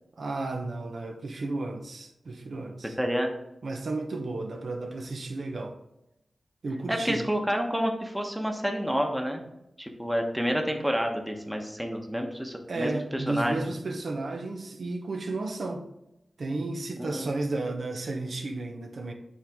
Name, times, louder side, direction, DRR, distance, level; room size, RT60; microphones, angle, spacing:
voice 1, 0.2-3.0 3.6-5.8 6.6-7.2 12.7-15.8 16.4-19.1, right 2 dB, 70° right, 4 dB, 0.8 m, -33 dB
voice 2, 3.0-3.3 6.9-9.5 9.8-13.6 17.0-17.3, equal, 5° right, 3 dB, 1.0 m, -29 dB
8.7 x 3.7 x 3.6 m, 0.87 s
cardioid pair, 65°, 0 cm